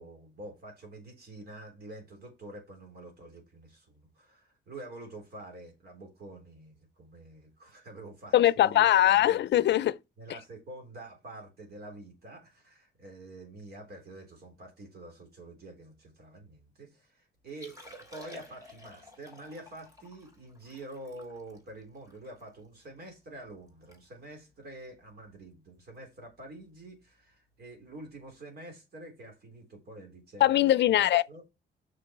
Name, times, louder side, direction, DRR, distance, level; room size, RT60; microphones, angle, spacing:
voice 1, 0.0-9.4 10.2-31.4, right 2 dB, 60° right, 3.7 m, -47 dB
voice 2, 8.3-10.0 30.4-31.2, left 13 dB, 70° left, 0.5 m, -22 dB
Liquid, 17.5-22.9 23.3-23.4 23.7-24.0 24.3-24.5 25.1-25.3 26.8-26.9, left 1 dB, 15° right, 3.2 m, -51 dB
6.1 x 6.0 x 5.9 m
wide cardioid pair, 145°, 19 cm